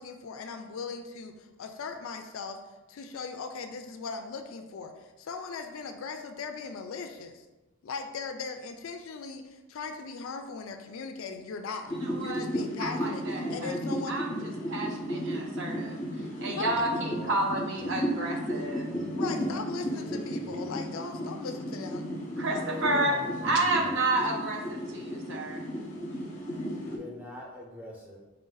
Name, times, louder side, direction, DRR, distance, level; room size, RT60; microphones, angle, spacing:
voice 1, 0.0-2.6 2.9-7.5 7.8-11.9 12.2-14.2 16.4-16.6 19.2-22.1, left 5 dB, 65° left, 7 dB, 0.4 m, -39 dB
sound 1, 11.9-27.0, equal, 35° left, 0.7 m, -34 dB
voice 2, 12.0-12.4 12.8-13.7 14.1-14.3 14.7-16.0 16.4-18.9 22.4-23.2 23.4-25.6, right 2 dB, 55° right, 1 dB, 0.6 m, -30 dB
voice 3, 16.7-17.4 17.8-18.5 18.9-19.6 19.8-20.7 22.6-23.7 26.6-28.2, left 1 dB, 5° right, -3 dB, 0.7 m, -45 dB
4.3 x 2.5 x 3.9 m, 1.1 s
head